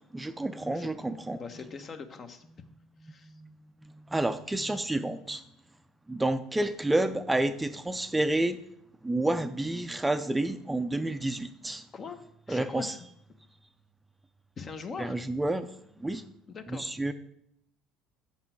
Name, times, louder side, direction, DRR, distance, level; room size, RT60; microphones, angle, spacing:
voice 1, 0.0-1.4 3.3-3.5 4.1-5.4 6.1-8.6 9.0-11.8 12.5-12.9 15.0-15.7 16.0-16.2 16.7-17.1, right 1 dB, 10° right, 10 dB, 0.5 m, -29 dB
voice 2, 1.3-2.5 3.0-3.3 11.9-13.1 14.6-15.2 16.5-16.9, left 5 dB, 40° left, 8 dB, 0.9 m, -42 dB
6.8 x 5.7 x 6.1 m, 0.72 s
hypercardioid pair, 65°, 0 cm